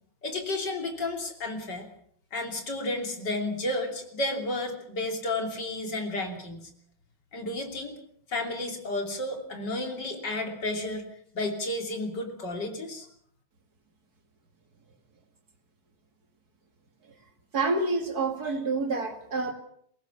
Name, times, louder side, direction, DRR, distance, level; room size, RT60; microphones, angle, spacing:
voice 1, 0.2-1.9 2.3-6.7 7.3-7.9 8.3-11.1 11.3-13.1, left 2 dB, 65° left, 4 dB, 3.7 m, -32 dB
voice 2, 17.5-19.5, right 3 dB, 55° right, 6 dB, 2.8 m, -28 dB
22.5 x 18.0 x 7.1 m, 0.65 s
omnidirectional pair, 2.0 m